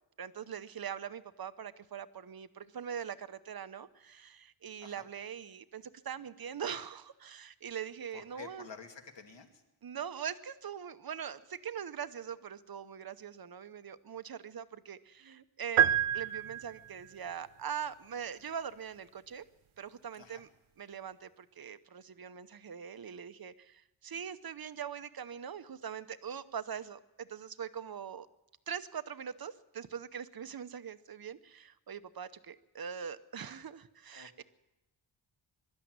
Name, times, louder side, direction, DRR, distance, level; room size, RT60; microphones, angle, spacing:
voice 1, 0.2-8.7 9.8-19.4 19.8-20.5 20.8-28.3 28.7-34.4, right 8 dB, 50° right, 12 dB, 0.8 m, -42 dB
voice 2, 8.1-9.6 20.2-20.4 34.1-34.4, left 6 dB, 60° left, 3 dB, 2.6 m, -50 dB
sound 1, 15.8-17.1, right 10 dB, 80° right, 0.7 m, -28 dB
22.5 x 12.5 x 9.5 m, 0.97 s
wide cardioid pair, 170°, 48 cm